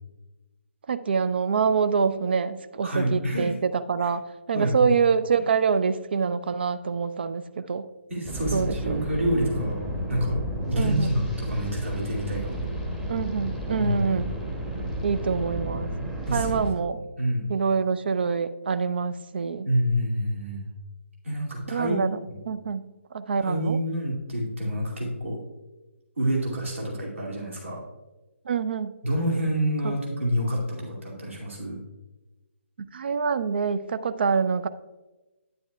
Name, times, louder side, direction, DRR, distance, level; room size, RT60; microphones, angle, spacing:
voice 1, 0.9-7.9 8.5-9.0 10.7-11.1 13.1-14.3 15.0-15.9 16.3-17.0 17.5-19.7 21.7-22.2 22.5-22.8 23.1-23.8 28.5-28.9 29.8-29.9 32.9-34.7, right 6 dB, 50° right, 13 dB, 0.5 m, -26 dB
voice 2, 2.8-3.5 4.0-4.1 4.5-4.9 8.1-9.8 10.1-12.6 13.8-14.3 16.3-16.6 17.2-17.5 19.6-20.7 21.2-22.4 23.4-25.4 26.2-27.8 29.0-31.8, equal, 70° right, -3 dB, 2.5 m, -27 dB
sound 1, 8.2-16.7, equal, 5° right, 1.0 m, -32 dB
9.8 x 9.5 x 2.3 m, 1.1 s
figure-of-eight pair, 140°, 7 cm